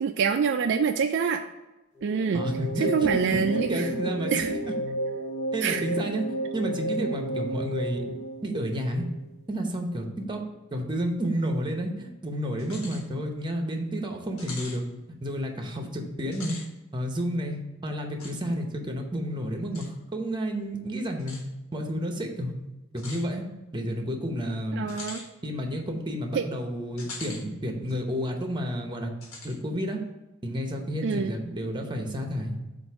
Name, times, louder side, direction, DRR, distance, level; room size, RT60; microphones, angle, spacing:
voice 1, 0.0-1.4 2.0-2.4 2.8-3.9 4.3-4.5 5.6-5.8 24.7-25.2 26.3-26.5 31.0-31.3, right 6 dB, 60° right, 6 dB, 0.3 m, -26 dB
sound 1, 2.0-9.2, right 1 dB, 35° left, 0.8 m, -32 dB
voice 2, 2.3-4.7 5.5-6.2 6.5-8.2 8.4-9.0 9.5-10.4 10.7-14.8 15.2-16.6 16.9-21.4 21.7-22.5 22.9-23.4 23.7-24.9 25.4-29.1 29.4-30.0 30.4-32.6, equal, 20° right, 3 dB, 0.8 m, -30 dB
sound 2, 12.6-13.0 13.5-13.6 14.4-14.8 16.2-16.7 18.2-18.4 19.7-19.9 21.2-21.4 23.0-23.3 24.9-25.3 27.0-27.4 27.9-28.0 29.2-29.6, left 3 dB, 85° left, 1.3 m, -41 dB
7.7 x 2.6 x 5.8 m, 1.0 s
head